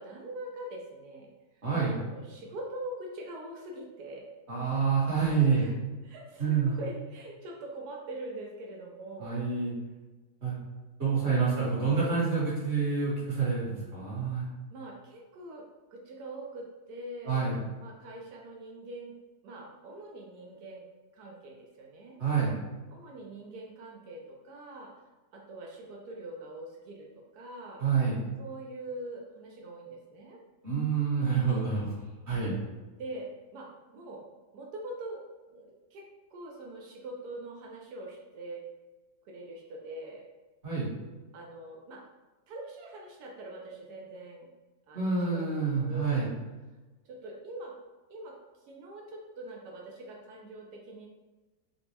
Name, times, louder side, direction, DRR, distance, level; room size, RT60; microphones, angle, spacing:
voice 1, 0.0-1.3 1.9-4.3 5.6-5.8 6.0-9.4 14.7-15.6 15.9-17.5 17.8-19.1 19.4-20.9 21.1-22.2 22.9-24.9 25.3-27.1 27.3-27.8 28.4-30.4 32.4-32.7 33.0-33.3 33.5-33.7 33.9-34.2 34.5-36.0 36.3-38.6 39.3-40.3 41.3-42.0 42.5-44.5 44.9-45.4 45.9-46.2 47.0-47.7 48.1-48.4 48.7-51.1, right 1 dB, 80° right, -1 dB, 1.1 m, -43 dB
voice 2, 1.6-2.0 4.5-5.7 6.4-6.7 9.2-9.7 10.4-10.5 11.0-14.4 17.2-17.6 22.2-22.5 27.8-28.2 30.6-31.9 32.3-32.5 40.6-40.9 44.9-46.3, right 5 dB, 45° right, -7 dB, 1.5 m, -27 dB
4.0 x 2.2 x 2.8 m, 1.2 s
omnidirectional pair, 1.7 m